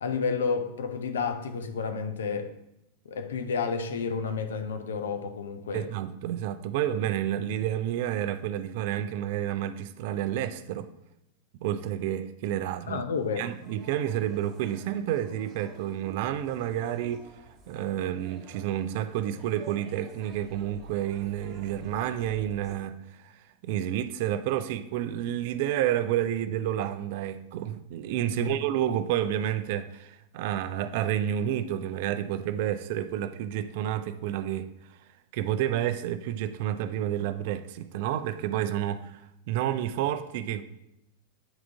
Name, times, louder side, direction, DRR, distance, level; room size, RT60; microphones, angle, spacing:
voice 1, 0.0-2.5 3.1-5.9 12.9-13.5 28.3-28.6, left 5 dB, 65° left, 0.5 m, -31 dB
voice 2, 5.7-10.9 11.6-13.0 13.4-17.3 17.7-34.7 35.3-39.2 39.5-40.6, right 11 dB, 50° right, 0.3 m, -30 dB
sound 1, 13.1-22.8, right 2 dB, 30° right, 1.3 m, -51 dB
8.9 x 3.6 x 3.5 m
figure-of-eight pair, 90°, 0 cm